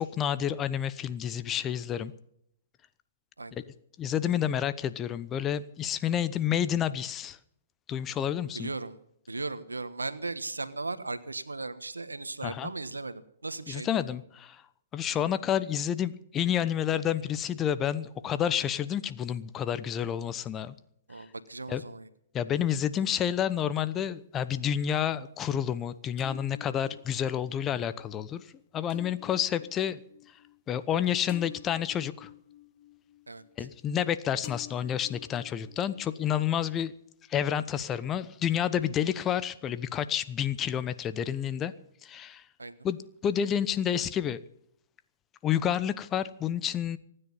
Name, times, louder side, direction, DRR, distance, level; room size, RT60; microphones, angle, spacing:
voice 1, 0.0-2.1 3.5-3.6 4.0-7.4 7.9-8.7 12.4-12.7 13.7-14.6 14.9-20.7 21.7-21.8 22.3-28.5 28.7-30.0 30.7-32.3 33.6-36.9 37.3-41.7 42.0-42.4 42.8-44.4 45.4-47.0, left 9 dB, 25° left, 14 dB, 0.9 m, -29 dB
voice 2, 8.5-9.0 9.3-14.0 21.1-22.1 33.3-33.4 42.6-42.8, right 3 dB, 85° right, 13 dB, 1.3 m, -37 dB
sound 1, 23.7-24.5 26.2-34.1 34.4-36.5, left 15 dB, 40° left, 1.2 m, -51 dB
24.5 x 10.0 x 5.6 m, 0.73 s
figure-of-eight pair, 120°, 0 cm